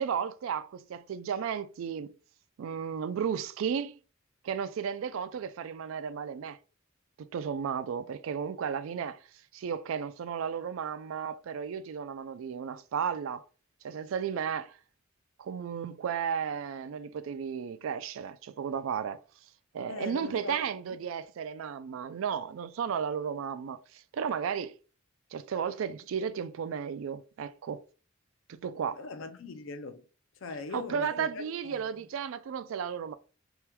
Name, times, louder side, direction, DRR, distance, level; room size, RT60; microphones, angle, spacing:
voice 1, 0.0-2.1 2.6-4.0 4.4-6.6 7.2-9.2 9.5-13.4 13.8-14.8 15.4-19.2 19.7-24.7 25.3-27.8 28.5-29.0 30.7-33.1, right 7 dB, 75° right, 0.3 m, -34 dB
voice 2, 19.9-20.6 29.0-30.0 30.4-31.8, left 3 dB, 65° left, 0.5 m, -41 dB
3.6 x 2.2 x 2.9 m
head